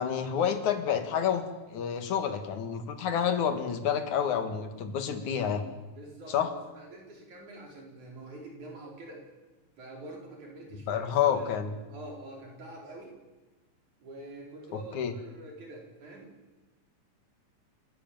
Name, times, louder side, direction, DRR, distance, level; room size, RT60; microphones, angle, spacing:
voice 1, 0.0-5.7 6.3-6.5 10.9-11.7 14.7-15.2, left 8 dB, 80° left, 8 dB, 3.3 m, -29 dB
voice 2, 6.0-9.3 9.8-13.1 14.0-16.3, right 2 dB, 80° right, 0 dB, 6.3 m, -46 dB
28.5 x 13.5 x 9.2 m, 1.2 s
omnidirectional pair, 3.3 m